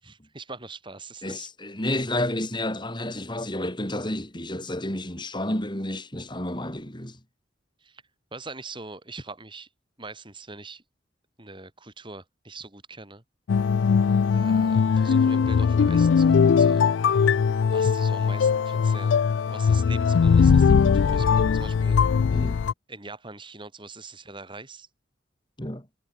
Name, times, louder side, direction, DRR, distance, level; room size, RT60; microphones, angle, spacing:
voice 1, 0.0-1.5 7.8-8.0 8.3-9.7 10.0-10.8 11.4-13.2 14.3-16.9 17.7-19.2 19.5-22.4 22.9-24.9, right 3 dB, 25° right, 4.8 m, -42 dB
voice 2, 1.2-7.2 22.3-22.6 25.6-25.9, left 1 dB, 25° left, 5.5 m, -30 dB
sound 1, 13.5-22.7, left 6 dB, 70° left, 0.4 m, -20 dB
head